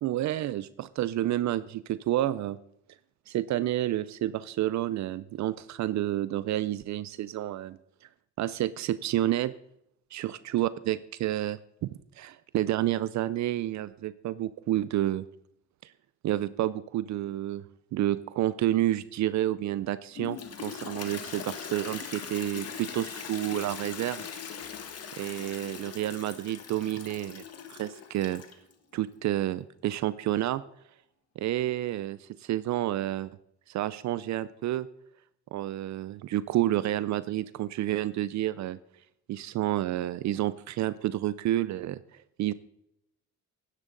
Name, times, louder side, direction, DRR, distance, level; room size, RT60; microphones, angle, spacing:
voice 1, 0.0-2.6 3.3-7.8 8.4-9.5 10.1-11.9 12.2-15.3 15.8-15.9 16.2-17.6 17.9-24.2 25.2-27.4 27.7-28.4 28.9-30.6 31.4-33.3 33.7-34.9 35.5-38.8 39.3-42.5, right 14 dB, 70° right, 16 dB, 0.5 m, -30 dB
Toilet flush, 20.1-28.7, left 7 dB, 55° left, 1.5 m, -41 dB
11.0 x 10.0 x 3.9 m, 0.77 s
cardioid pair, 90°, 30 cm